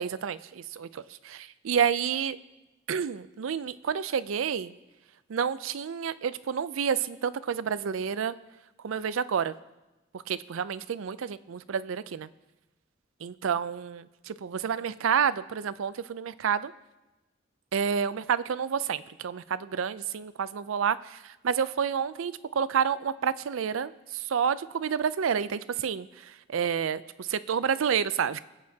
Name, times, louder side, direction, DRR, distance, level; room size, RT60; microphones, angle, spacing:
voice 1, 0.0-2.4 2.9-4.7 5.3-8.4 8.8-9.5 10.1-12.3 13.2-16.7 17.7-28.4, right 7 dB, 85° right, 16 dB, 0.4 m, -29 dB
21.5 x 8.5 x 2.8 m, 1.0 s
head